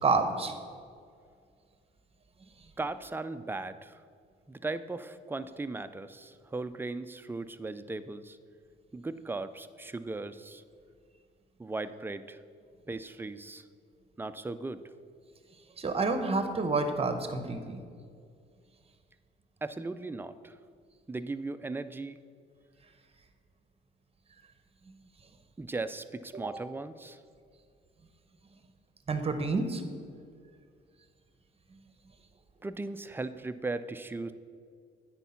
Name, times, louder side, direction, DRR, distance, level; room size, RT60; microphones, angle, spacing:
voice 1, 0.0-0.6 15.8-17.8 26.3-26.5 29.1-29.8, right 3 dB, 30° right, 8 dB, 0.9 m, -29 dB
voice 2, 2.8-4.0 4.5-8.4 8.9-10.6 11.6-12.4 12.9-13.6 14.2-14.8 19.6-20.5 21.1-22.2 25.6-27.2 32.6-34.3, right 3 dB, 10° right, 11 dB, 0.4 m, -37 dB
9.1 x 4.5 x 5.7 m, 2.2 s
cardioid pair, 90°, 20 cm